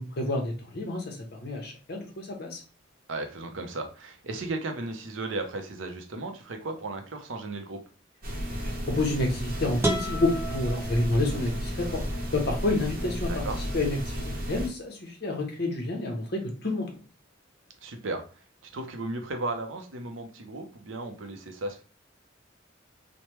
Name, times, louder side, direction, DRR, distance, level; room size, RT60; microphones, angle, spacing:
voice 1, 0.0-2.6 8.6-12.0 12.3-16.9, left 2 dB, 55° left, 2 dB, 0.8 m, -29 dB
voice 2, 3.1-7.8 13.3-13.6 17.8-18.2 18.6-21.8, right 2 dB, 90° right, 5 dB, 0.6 m, -35 dB
sound 1, 8.2-14.7, equal, 50° right, 0.8 m, -33 dB
sound 2, 9.8-11.7, right 1 dB, 15° right, 0.5 m, -32 dB
3.1 x 2.1 x 3.0 m, 0.35 s
head